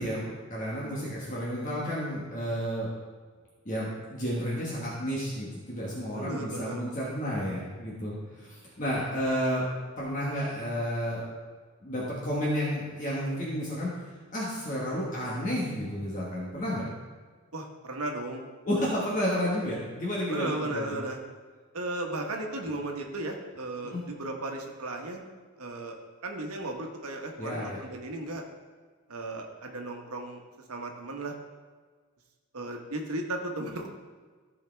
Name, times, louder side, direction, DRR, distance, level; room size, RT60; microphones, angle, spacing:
voice 1, 0.0-2.9 3.6-9.7 10.0-11.2 11.8-13.9 14.3-16.8 18.6-20.9 23.8-24.0 27.4-27.8, equal, 35° left, -6 dB, 1.5 m, -31 dB
voice 2, 6.2-6.8 17.5-18.5 20.3-21.2 21.7-25.2 25.6-26.0 26.2-28.4 29.1-30.4 30.7-31.3 32.5-33.9, right 2 dB, 90° right, 2 dB, 1.2 m, -35 dB
14.0 x 4.9 x 3.4 m, 1.5 s
head